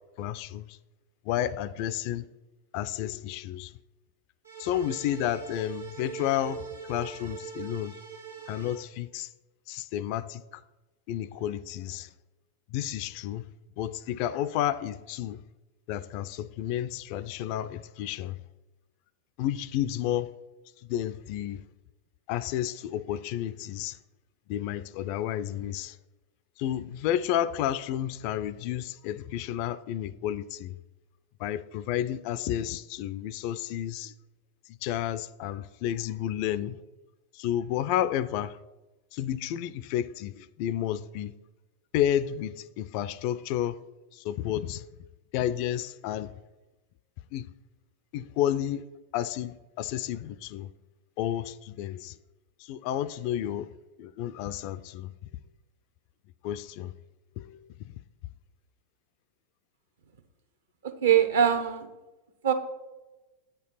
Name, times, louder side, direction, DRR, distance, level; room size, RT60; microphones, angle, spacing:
voice 1, 0.2-0.8 1.3-2.3 2.7-3.7 4.6-7.9 8.5-9.3 9.7-10.6 11.1-12.1 12.7-13.5 13.8-15.4 15.9-18.4 19.4-20.3 20.9-21.6 22.3-24.0 24.5-26.0 26.6-30.7 31.4-34.1 34.8-36.8 37.3-38.6 39.1-41.3 41.9-43.8 44.1-44.8 45.3-46.3 47.3-47.5 48.1-48.9 49.1-50.7 51.2-52.1 52.6-53.7 54.0-55.1 56.4-56.9 57.4-57.6, left 11 dB, 45° left, 0.3 m, -31 dB
sound 1, 4.4-8.8, right 8 dB, 80° right, 1.6 m, -41 dB
voice 2, 60.8-61.9 62.4-62.5, right 9 dB, 60° right, 0.9 m, -22 dB
8.3 x 4.5 x 5.7 m
figure-of-eight pair, 90°, 0 cm